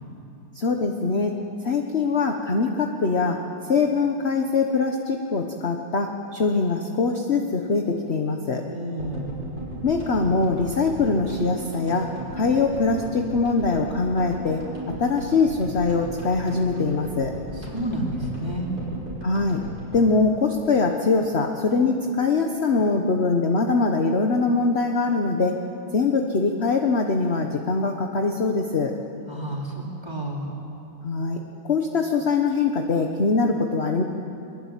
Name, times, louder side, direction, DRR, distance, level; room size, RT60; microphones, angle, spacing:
voice 1, 0.5-1.3 1.6-3.4 3.7-8.6 9.8-12.1 12.3-14.6 15.0-17.3 19.2-19.6 19.9-25.5 25.9-28.9 31.0-31.4 31.6-34.0, left 4 dB, 40° left, 3 dB, 1.3 m, -22 dB
voice 2, 8.7-9.3 17.5-18.7 29.3-30.6, right 1 dB, 15° right, -3 dB, 4.3 m, -30 dB
sound 1, 9.0-21.2 21.5-21.6 21.7-21.8, right 1 dB, 50° right, 6.4 m, -36 dB
22.5 x 21.0 x 9.1 m, 2.8 s
omnidirectional pair, 2.0 m